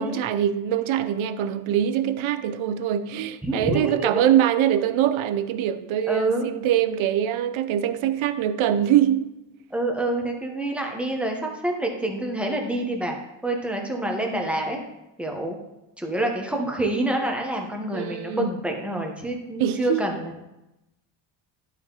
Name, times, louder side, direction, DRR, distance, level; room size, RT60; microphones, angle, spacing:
voice 1, 0.0-9.3 17.9-18.6 19.6-20.0, right 10 dB, 85° right, 0.7 m, -23 dB
voice 2, 3.4-4.3 6.0-6.5 9.7-13.1 13.4-14.8 15.2-15.6 16.0-20.4, right 1 dB, ahead, 1.2 m, -27 dB
11.5 x 4.7 x 4.0 m
cardioid pair, 140°, 47 cm